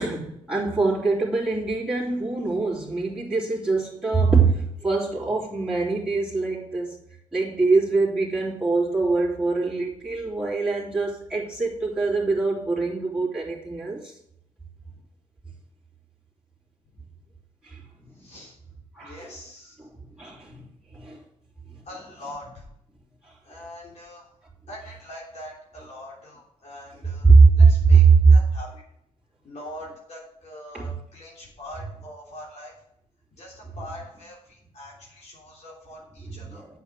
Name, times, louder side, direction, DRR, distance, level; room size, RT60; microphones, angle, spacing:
voice 1, 0.0-7.0 7.3-14.1 17.6-17.8 18.2-18.3 18.9-19.3 20.2-20.6 20.9-21.2 23.2-23.3 27.2-28.3 30.7-30.8 36.5-36.7, right 4 dB, 5° right, -9 dB, 3.5 m, -21 dB
voice 2, 18.1-18.6 19.0-19.7 21.8-22.7 23.4-24.3 24.7-28.0 28.3-28.7 29.4-32.7 33.4-36.6, left 1 dB, 60° left, -4 dB, 3.4 m, -43 dB
8.3 x 6.9 x 6.3 m, 0.74 s
cardioid pair, 70°, 13 cm